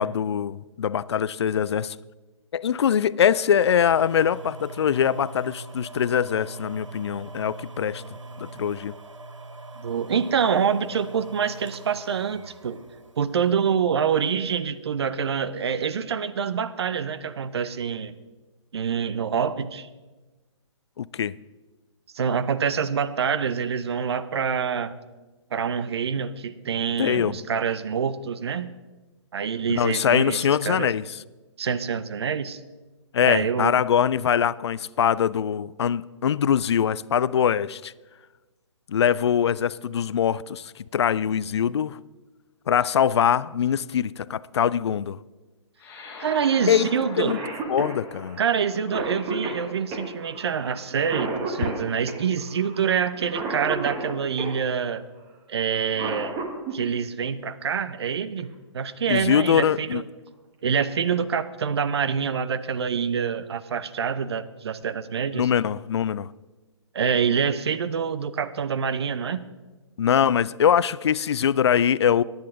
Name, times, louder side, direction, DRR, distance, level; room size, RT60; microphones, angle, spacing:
voice 1, 0.0-2.0 2.5-8.0 8.4-8.9 21.0-21.3 27.0-27.4 29.7-31.0 33.1-37.9 38.9-42.0 42.7-45.2 46.7-46.9 47.2-47.4 47.7-48.4 59.1-60.0 65.3-66.3 70.0-72.2, left 8 dB, 60° left, 0.4 m, -23 dB
sound 1, 3.6-13.6 14.2-14.3, right 2 dB, 80° right, 1.0 m, -42 dB
voice 2, 9.8-12.8 13.2-18.1 18.7-19.9 22.1-25.0 25.5-28.8 29.3-30.9 31.6-32.6 33.2-33.7 46.2-47.3 48.4-55.0 55.5-56.4 56.7-60.0 60.6-65.5 66.9-69.4, right 7 dB, 60° right, 0.7 m, -26 dB
sound 2, 45.8-50.5, left 3 dB, 15° left, 2.2 m, -43 dB
Cough, 46.9-47.0 47.3-54.6 55.7-56.8 58.4-58.5 59.5-59.8 60.3-60.4 60.7-61.2, right 3 dB, 25° right, 1.6 m, -33 dB
15.0 x 10.5 x 3.6 m
figure-of-eight pair, 130°, 16 cm